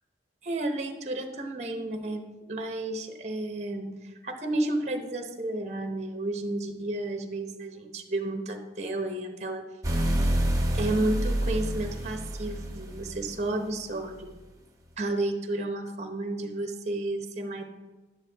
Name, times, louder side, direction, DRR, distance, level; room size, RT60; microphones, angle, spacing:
voice 1, 0.4-9.6 10.7-14.3 15.0-17.6, right 2 dB, 40° right, 5 dB, 0.9 m, -32 dB
sound 1, 9.8-13.4, right 1 dB, 20° right, 1.4 m, -28 dB
11.0 x 8.9 x 3.4 m, 1.2 s
head